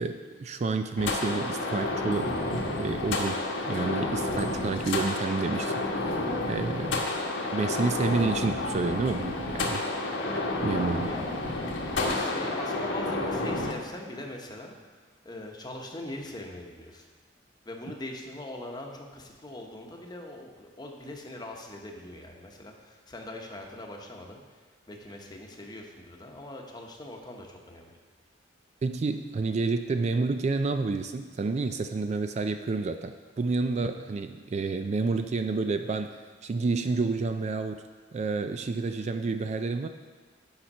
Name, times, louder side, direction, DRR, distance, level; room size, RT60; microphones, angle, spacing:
voice 1, 0.0-7.0 7.5-9.8 10.6-11.1 28.8-37.8 38.1-39.9, right 3 dB, 35° right, 8 dB, 0.3 m, -29 dB
sound 1, 1.0-13.7, left 2 dB, 80° left, 1.3 m, -30 dB
voice 2, 11.9-14.7 15.2-17.1 17.6-24.4 24.9-28.0, left 1 dB, 20° left, 1 dB, 1.0 m, -41 dB
8.8 x 5.8 x 5.4 m, 1.4 s
head